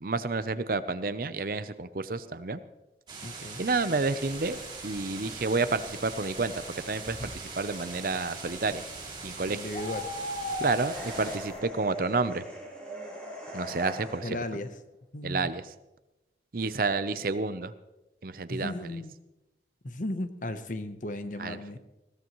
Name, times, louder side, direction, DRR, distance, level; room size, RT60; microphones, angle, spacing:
voice 1, 0.0-2.6 3.6-4.6 4.8-8.8 9.2-9.6 10.6-12.4 13.5-14.4 15.2-15.6 16.5-17.7 18.2-18.7 21.4-21.8, right 3 dB, 55° right, 13 dB, 0.7 m, -30 dB
sound 1, 3.1-11.4, right 4 dB, 25° right, 2.8 m, -42 dB
voice 2, 3.2-3.6 9.5-10.1 14.2-14.7 15.1-15.5 18.5-19.2 19.8-21.8, left 1 dB, 45° left, 10 dB, 1.0 m, -35 dB
sound 2, 4.2-11.6, left 1 dB, 30° left, 1.2 m, -41 dB
sound 3, 10.6-14.5, right 1 dB, 5° left, 3.9 m, -41 dB
20.5 x 16.5 x 3.1 m, 0.98 s
head